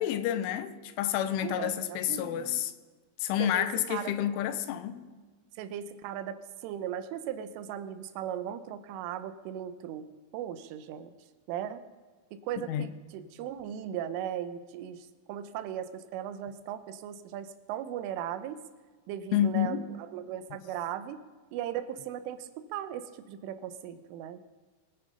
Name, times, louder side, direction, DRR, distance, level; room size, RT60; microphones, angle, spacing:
voice 1, 0.0-2.7 3.2-5.1 12.6-12.9 19.3-19.9, left 11 dB, 85° left, 3.2 m, -29 dB
voice 2, 1.4-2.6 3.4-4.1 5.6-10.1 10.3-11.1 11.5-11.8 12.3-18.6 19.1-21.2 21.5-24.4, right 10 dB, 85° right, 3.4 m, -37 dB
21.5 x 9.9 x 5.4 m
omnidirectional pair, 5.6 m